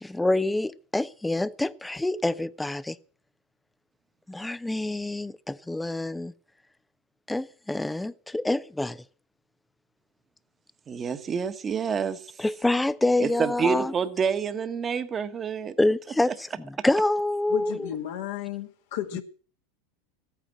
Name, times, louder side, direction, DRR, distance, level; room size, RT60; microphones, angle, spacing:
voice 1, 0.0-3.0 4.3-6.3 7.3-9.0 12.4-13.9 15.8-17.8, left 2 dB, 5° left, 0.6 m, -26 dB
voice 2, 10.9-12.2 13.2-15.8, right 6 dB, 30° right, 1.3 m, -28 dB
voice 3, 17.5-19.2, left 12 dB, 70° left, 1.8 m, -33 dB
14.5 x 9.2 x 7.5 m
hypercardioid pair, 95°, 0 cm